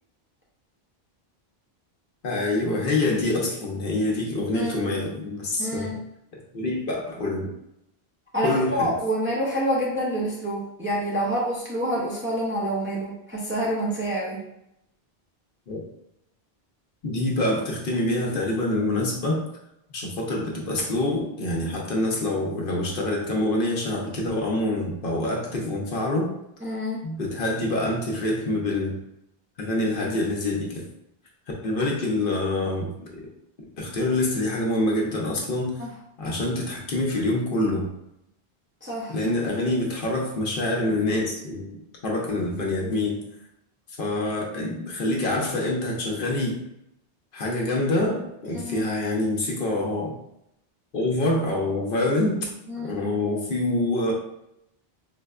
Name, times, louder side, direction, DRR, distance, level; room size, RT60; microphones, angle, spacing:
voice 1, 2.2-6.0 6.3-7.5 8.4-8.9 15.7-15.8 17.0-19.4 19.9-26.3 27.0-29.0 29.6-30.8 31.6-32.9 33.8-35.9 36.2-37.9 39.1-43.2 44.0-46.6 47.3-50.1 50.9-52.5 52.8-54.1, left 2 dB, 60° left, -1 dB, 0.8 m, -26 dB
voice 2, 4.5-4.9 5.6-6.0 8.3-14.4 26.6-27.1 35.8-35.9 38.8-39.1 48.5-48.9 52.7-53.0, equal, 15° right, -5 dB, 0.4 m, -27 dB
4.0 x 2.1 x 2.3 m, 0.81 s
omnidirectional pair, 1.0 m